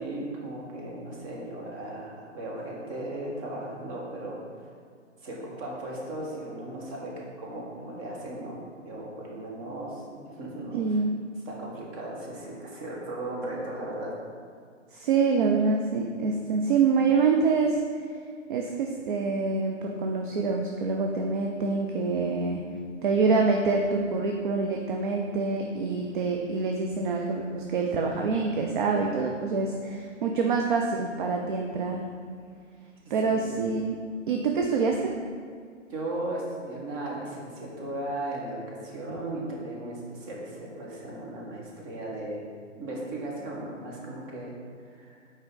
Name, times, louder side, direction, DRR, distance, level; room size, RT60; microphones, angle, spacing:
voice 1, 0.0-4.4 5.2-7.1 7.4-11.0 11.5-14.1 33.3-33.4 35.9-42.5 42.8-45.2, right 1 dB, 30° right, -3 dB, 1.2 m, -36 dB
voice 2, 10.7-11.2 14.9-17.8 18.5-22.6 23.0-32.1 33.1-34.0 34.3-35.1, right 4 dB, 45° right, 2 dB, 0.4 m, -26 dB
5.4 x 4.6 x 3.8 m, 2.1 s
figure-of-eight pair, 125°, 38 cm